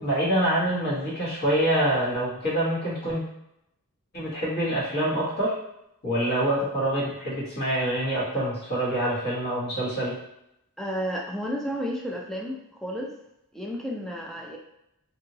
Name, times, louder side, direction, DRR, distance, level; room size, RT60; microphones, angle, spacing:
voice 1, 0.0-3.2 4.1-5.5 6.0-10.1, right 1 dB, 45° left, -8 dB, 1.2 m, -26 dB
voice 2, 10.8-13.1 13.5-14.6, equal, ahead, -1 dB, 0.3 m, -32 dB
2.8 x 2.6 x 2.7 m, 0.83 s
head